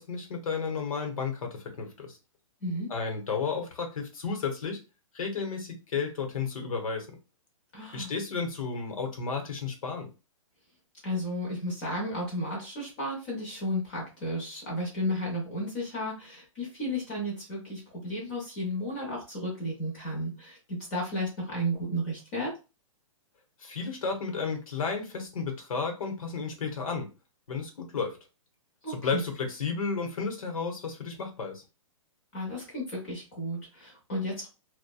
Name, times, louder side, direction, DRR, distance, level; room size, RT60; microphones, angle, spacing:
voice 1, 0.0-2.2 2.9-4.8 5.1-7.2 7.9-10.1 23.6-27.1 27.5-28.2 28.9-31.6, left 5 dB, 80° left, 3 dB, 1.0 m, -32 dB
voice 2, 7.7-8.1 11.0-22.5 28.8-29.2 32.3-34.5, equal, 20° left, -3 dB, 0.8 m, -33 dB
2.7 x 2.2 x 2.3 m, 0.29 s
hypercardioid pair, 180°, 17 cm